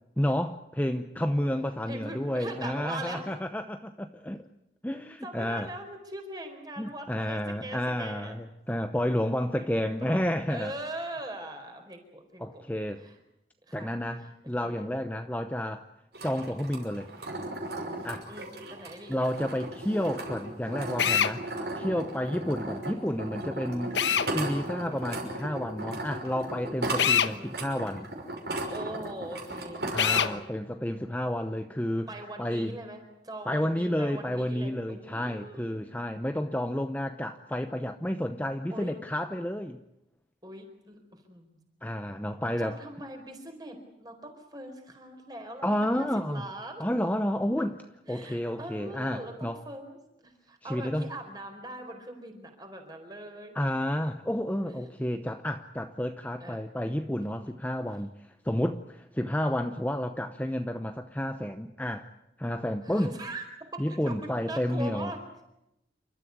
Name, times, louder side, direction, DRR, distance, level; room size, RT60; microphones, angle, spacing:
voice 1, 0.2-4.4 4.8-5.7 6.8-10.7 12.4-13.0 13.7-15.8 16.2-17.1 18.0-18.3 19.1-21.4 21.8-24.0 24.3-28.1 29.9-32.1 32.4-32.7 33.5-39.8 41.8-42.8 45.6-46.5 46.8-47.8 48.1-49.6 50.6-51.1 53.5-62.0 62.4-63.1 63.8-65.1, equal, 10° left, 7 dB, 0.8 m, -31 dB
voice 2, 1.9-3.3 5.2-8.4 9.1-12.7 13.0-13.1 13.7-14.3 14.6-14.8 18.3-19.2 22.2-22.4 23.7-24.9 27.3-27.6 28.7-30.4 32.1-35.9 38.7-38.9 40.4-41.6 42.6-45.7 46.0-46.8 47.6-47.7 48.1-49.3 49.6-53.6 54.6-54.9 56.4-56.6 57.5-57.6 62.8-63.4 63.7-65.2, right 1 dB, 20° right, 4 dB, 4.5 m, -42 dB
sound 1, 16.1-30.2, right 1 dB, 65° right, 5.9 m, -36 dB
Drill, 21.0-21.3 23.9-24.3 27.0-27.3 30.0-30.3, left 8 dB, 85° left, 1.1 m, -24 dB
29.0 x 13.5 x 9.5 m, 0.88 s
head